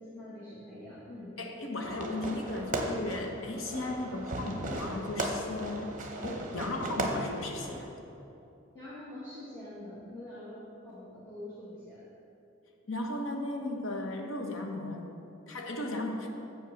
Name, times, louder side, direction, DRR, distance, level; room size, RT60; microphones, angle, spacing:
voice 1, 0.1-1.4 8.7-12.0 16.2-16.3, left 1 dB, 15° left, -11 dB, 1.6 m, -45 dB
voice 2, 1.4-8.0 12.9-16.3, left 2 dB, 80° left, 2 dB, 1.0 m, -36 dB
Fireworks, 1.8-7.8, right 1 dB, 40° right, 0.8 m, -36 dB
7.4 x 5.6 x 6.5 m, 2.8 s
head